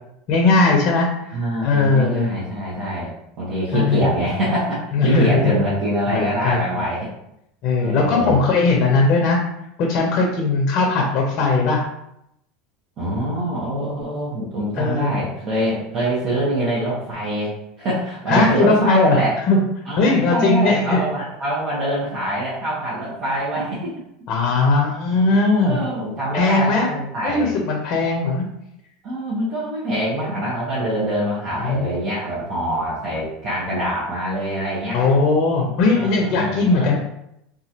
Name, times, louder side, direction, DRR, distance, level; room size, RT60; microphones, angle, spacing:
voice 1, 0.3-1.4 1.6-2.3 3.7-4.1 4.9-5.5 6.1-6.6 7.6-9.4 9.8-11.8 13.3-13.4 14.8-15.1 18.3-19.2 19.5-19.6 20.0-21.0 24.3-25.8 26.3-26.9 27.2-28.4 31.6-31.9 34.9-37.0, left 3 dB, 50° left, 0 dB, 0.7 m, -18 dB
voice 2, 1.3-3.1 3.4-7.1 7.8-8.4 13.0-17.5 17.8-19.3 19.9-23.9 25.6-27.5 29.0-35.0 35.9-36.9, right 1 dB, 45° right, -9 dB, 1.0 m, -24 dB
2.9 x 2.5 x 2.8 m, 0.79 s
supercardioid pair, 120°, 0 cm